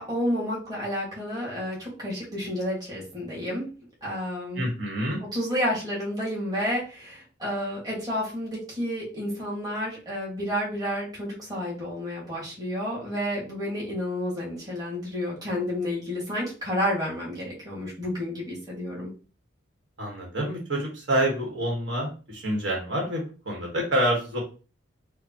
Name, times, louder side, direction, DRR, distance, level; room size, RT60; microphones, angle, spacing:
voice 1, 0.0-3.6 4.0-4.7 5.3-19.1, equal, 20° right, -5 dB, 1.7 m, -30 dB
voice 2, 4.5-5.2 20.0-24.4, right 1 dB, 70° right, -2 dB, 1.4 m, -27 dB
4.9 x 2.3 x 2.9 m, 0.34 s
head